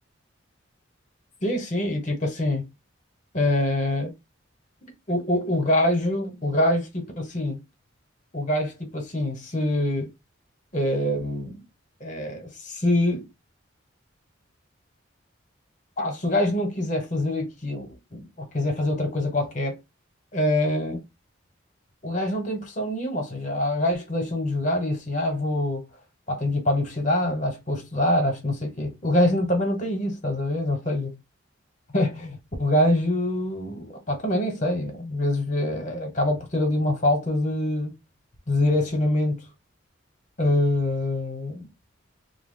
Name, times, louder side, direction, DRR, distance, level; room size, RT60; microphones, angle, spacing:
voice 1, 1.4-2.7 3.3-4.1 5.1-7.6 8.3-10.1 10.7-11.6 12.0-13.3 16.0-19.8 20.3-21.0 22.0-25.8 26.3-31.1 31.9-37.9 38.5-39.5 40.4-41.7, left 1 dB, 40° left, 1.0 m, -25 dB
2.9 x 2.1 x 3.6 m
head